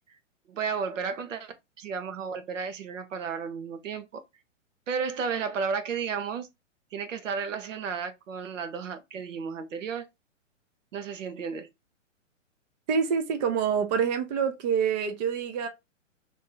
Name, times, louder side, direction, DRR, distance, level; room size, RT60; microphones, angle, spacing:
voice 1, 0.5-4.2 4.9-6.5 6.9-10.1 10.9-11.7, right 6 dB, 75° right, 0.8 m, -33 dB
voice 2, 12.9-15.7, right 7 dB, 35° right, 0.6 m, -26 dB
2.8 x 2.6 x 3.7 m
hypercardioid pair, 130°, 39 cm